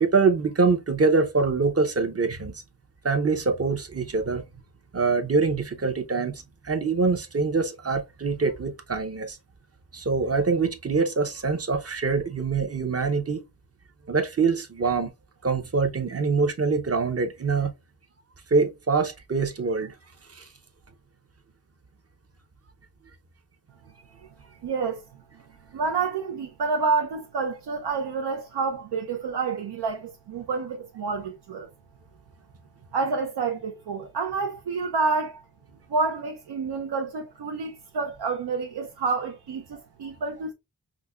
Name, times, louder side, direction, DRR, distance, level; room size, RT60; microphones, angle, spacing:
voice 1, 0.0-2.6 3.0-4.4 4.9-9.4 9.9-13.4 14.1-15.1 15.4-17.7 18.5-19.9 20.3-20.5, right 4 dB, 40° right, 0.7 m, -24 dB
voice 2, 24.6-25.0 25.7-31.7 32.9-35.4 35.9-40.5, right 4 dB, 80° right, 0.6 m, -28 dB
5.0 x 2.1 x 2.2 m
wide cardioid pair, 65°, 39 cm